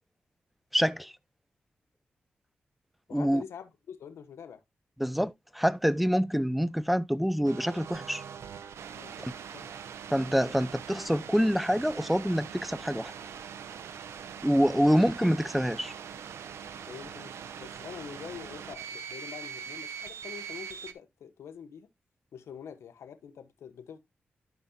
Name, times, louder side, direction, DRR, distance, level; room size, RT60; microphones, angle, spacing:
voice 1, 0.7-1.1 3.1-3.4 5.0-8.2 9.2-9.3 10.1-13.1 14.4-15.9, equal, ahead, 0.6 m, -26 dB
voice 2, 3.1-4.6 8.9-9.7 16.9-21.9 22.3-24.0, left 7 dB, 85° left, 1.1 m, -45 dB
sound 1, 7.4-20.9, right 7 dB, 85° right, 0.7 m, -42 dB
12.0 x 5.4 x 2.8 m
cardioid pair, 50°, 4 cm